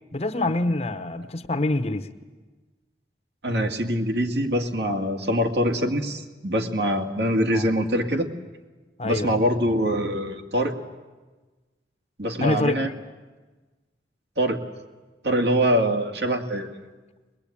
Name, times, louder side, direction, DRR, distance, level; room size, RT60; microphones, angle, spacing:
voice 1, 0.1-2.1 7.5-7.7 9.0-9.4 12.4-12.9, left 2 dB, 35° left, 10 dB, 0.9 m, -25 dB
voice 2, 3.4-8.3 9.0-10.8 12.2-12.9 14.4-14.6 15.2-16.9, equal, 70° right, 3 dB, 2.2 m, -24 dB
22.0 x 21.5 x 8.6 m, 1.3 s
head